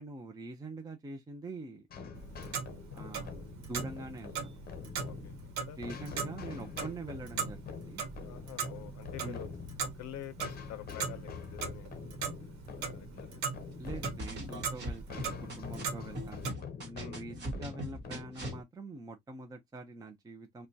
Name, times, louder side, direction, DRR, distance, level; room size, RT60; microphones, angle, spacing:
voice 1, 0.0-1.9 2.9-4.6 5.7-8.0 9.2-9.5 13.8-20.7, right 2 dB, 10° right, 0.6 m, -45 dB
sound 1, 1.9-18.6, left 6 dB, 30° left, 0.8 m, -46 dB
Clock, 2.1-16.5, right 6 dB, 65° right, 1.2 m, -40 dB
voice 2, 8.3-9.5 10.0-11.9 12.4-12.5 12.9-13.4 17.0-17.2, left 12 dB, 60° left, 0.6 m, -47 dB
sound 2, 13.9-15.8 16.1-18.6, equal, 35° right, 1.6 m, -39 dB
4.8 x 2.3 x 2.7 m
cardioid pair, 150°, 31 cm